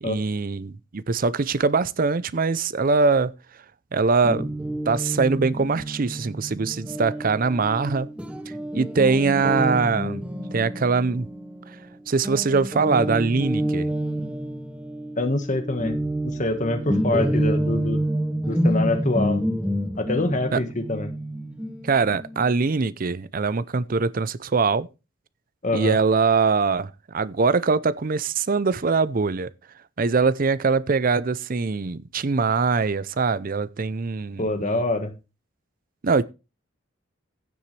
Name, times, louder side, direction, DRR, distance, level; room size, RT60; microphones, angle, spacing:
voice 1, 0.0-3.3 3.9-4.5 4.9-8.1 8.7-10.2 10.5-11.3 12.1-13.9 20.5-20.6 21.8-24.9 25.7-29.5 30.0-34.8 36.0-36.2, right 4 dB, 45° right, 0.5 m, -22 dB
Guitar, 4.2-11.9 12.2-22.7, equal, 5° right, 0.9 m, -28 dB
voice 2, 15.2-16.0 16.2-18.0 18.5-19.4 20.0-21.1 25.6-26.0 34.4-35.1, left 2 dB, 40° left, 1.5 m, -25 dB
15.5 x 7.1 x 3.3 m
head